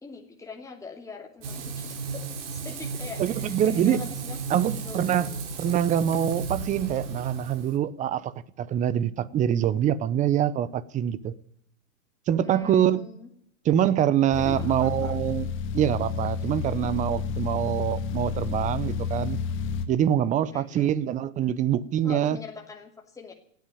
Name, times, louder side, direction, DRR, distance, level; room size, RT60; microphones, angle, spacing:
voice 1, 0.0-2.2 2.5-4.4 4.7-5.4 12.4-13.3 14.4-15.1 20.5-20.9 22.0-23.3, left 5 dB, 10° left, 2.6 m, -42 dB
Frying (food), 1.4-7.8, right 4 dB, 55° right, 3.9 m, -34 dB
voice 2, 3.2-4.0 4.5-5.3 5.6-8.3 8.6-11.3 12.3-13.0 13.6-15.5 15.7-19.4 19.9-22.4, right 10 dB, 20° right, 0.7 m, -25 dB
sound 1, 14.3-19.9, left 5 dB, 30° left, 1.9 m, -30 dB
16.5 x 9.3 x 9.3 m
hypercardioid pair, 125°, 41 cm